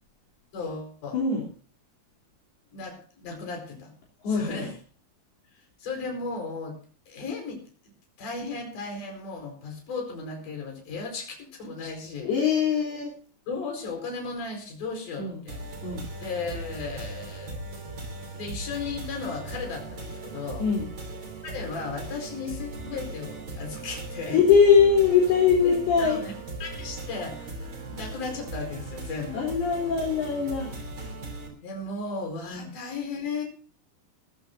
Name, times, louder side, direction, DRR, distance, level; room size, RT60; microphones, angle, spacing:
voice 1, 0.5-1.2 2.7-3.9 4.3-4.8 5.8-6.8 7.1-7.6 8.2-12.3 13.5-15.6 16.2-17.6 18.3-20.6 21.4-24.4 25.6-26.3 26.6-29.5 31.6-33.4, left 4 dB, 45° left, 2 dB, 6.0 m, -35 dB
voice 2, 1.1-1.4 4.2-4.7 12.2-13.1 15.2-15.4 15.8-16.0 20.6-20.9 24.3-26.2 29.3-30.7 32.5-32.6, left 6 dB, 65° left, -4 dB, 5.2 m, -22 dB
sound 1, 15.5-31.5, right 2 dB, 30° right, 3.4 m, -38 dB
20.5 x 14.0 x 2.7 m, 0.42 s
omnidirectional pair, 5.1 m